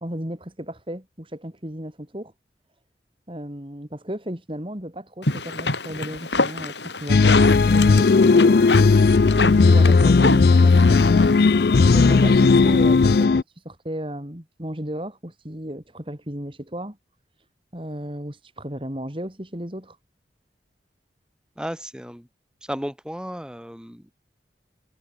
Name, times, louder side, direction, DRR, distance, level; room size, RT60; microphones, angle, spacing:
voice 1, 0.0-2.3 3.3-8.7 9.4-11.4 11.9-17.0 17.7-20.0, equal, 30° right, 3.3 m, -34 dB
sound 1, 5.2-13.2, left 3 dB, 80° left, 7.8 m, -28 dB
sound 2, 7.1-13.4, left 4 dB, 60° left, 0.4 m, -15 dB
voice 2, 21.6-22.3 22.6-24.1, equal, 5° right, 3.4 m, -34 dB
head